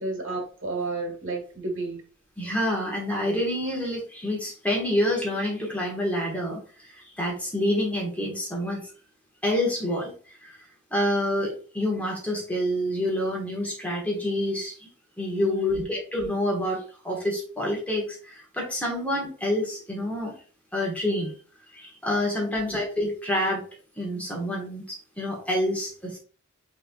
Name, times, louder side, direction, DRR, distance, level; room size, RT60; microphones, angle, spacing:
voice 1, 0.0-2.0 15.4-15.9 22.5-22.8, right 2 dB, 70° right, 3 dB, 1.4 m, -32 dB
voice 2, 2.4-6.6 6.9-8.8 9.4-10.1 10.4-10.6 10.9-14.7 15.2-20.3 20.7-21.3 21.7-23.6 24.0-26.2, left 1 dB, 5° left, -2 dB, 1.2 m, -27 dB
6.1 x 3.0 x 2.3 m, 0.39 s
head